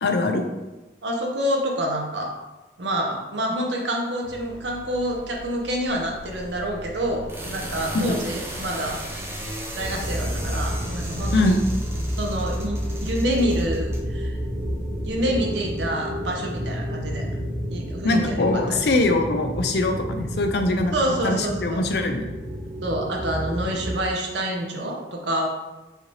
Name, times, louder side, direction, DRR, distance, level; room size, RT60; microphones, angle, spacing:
voice 1, 0.0-0.4 7.9-8.0 11.3-11.6 18.0-20.9 21.2-22.3, left 2 dB, 65° left, 5 dB, 0.5 m, -22 dB
voice 2, 1.0-2.3 2.8-9.2 9.8-11.6 12.2-14.4 15.0-17.3 17.7-18.5 20.9-21.8 22.8-25.5, equal, 80° right, 0 dB, 0.8 m, -27 dB
sound 1, 4.2-13.0, right 2 dB, 15° left, 1.3 m, -44 dB
sound 2, 5.1-15.2, right 1 dB, 15° right, 0.5 m, -37 dB
sound 3, 9.8-24.0, equal, 45° right, 0.9 m, -30 dB
4.9 x 2.8 x 3.2 m, 1.1 s
head